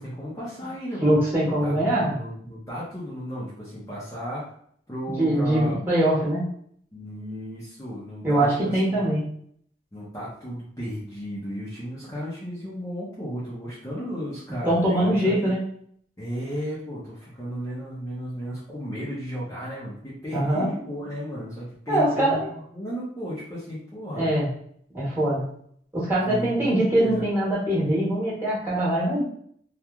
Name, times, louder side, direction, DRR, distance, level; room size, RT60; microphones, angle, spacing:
voice 1, 0.0-1.1 1.6-4.5 4.9-5.8 6.9-9.1 9.9-15.5 16.2-24.3 26.2-27.2, equal, 20° left, -8 dB, 0.6 m, -34 dB
voice 2, 1.0-2.1 5.2-6.5 8.2-9.3 14.6-15.6 20.3-20.7 21.9-22.5 24.2-24.5 24.9-25.5 25.9-29.2, right 1 dB, 15° right, -9 dB, 1.2 m, -22 dB
2.9 x 2.4 x 2.3 m, 0.64 s
head